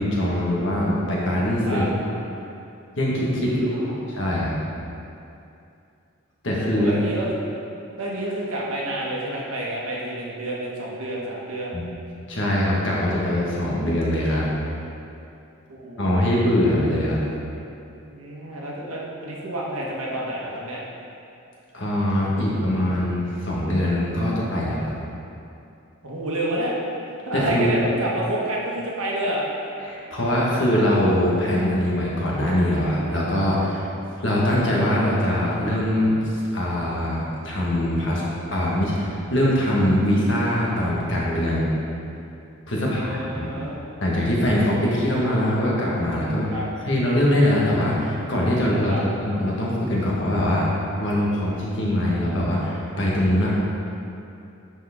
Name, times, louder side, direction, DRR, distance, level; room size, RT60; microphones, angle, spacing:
voice 1, 0.0-1.8 3.0-4.6 6.4-6.9 11.7-11.8 12.3-14.5 16.0-17.2 21.7-24.9 27.3-27.7 29.8-33.9 34.2-38.2 38.5-41.7 42.7-43.5 44.0-46.5 46.9-53.5, left 1 dB, 60° left, -5 dB, 1.6 m, -22 dB
voice 2, 3.4-4.1 6.7-7.4 8.0-11.8 15.7-16.0 18.1-20.8 26.0-26.7 27.3-29.4 42.8-43.8 46.5-46.6 48.8-49.0, right 1 dB, 85° right, -4 dB, 1.5 m, -29 dB
10.5 x 4.7 x 3.7 m, 2.6 s
head